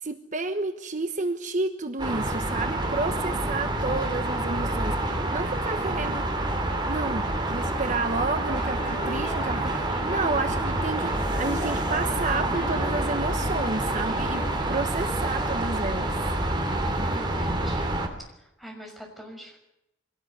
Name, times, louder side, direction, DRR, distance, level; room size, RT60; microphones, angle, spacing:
voice 1, 0.0-6.3 6.9-16.2, right 3 dB, 45° right, 8 dB, 1.1 m, -31 dB
sound 1, 2.0-18.1, right 1 dB, 25° right, 3.4 m, -27 dB
sound 2, 8.5-14.6, left 1 dB, 45° left, 3.2 m, -39 dB
voice 2, 17.1-18.0 18.4-19.6, equal, ahead, 0 dB, 6.1 m, -44 dB
24.0 x 18.0 x 9.7 m, 0.84 s
head